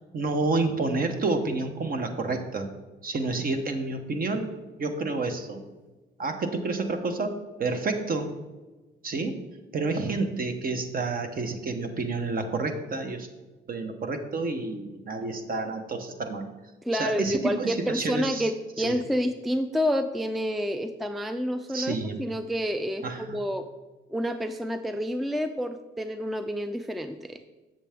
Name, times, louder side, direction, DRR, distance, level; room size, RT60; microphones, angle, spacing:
voice 1, 0.1-2.7 3.0-4.5 4.8-5.6 6.2-8.3 9.0-9.4 9.7-13.3 13.7-16.4 16.9-18.5 18.8-19.0 21.7-22.2 23.0-23.4, right 3 dB, 45° right, 6 dB, 1.0 m, -29 dB
voice 2, 16.9-23.6 24.1-27.4, equal, ahead, 9 dB, 0.4 m, -29 dB
7.5 x 7.0 x 3.5 m, 1.2 s
cardioid pair, 90°, 20 cm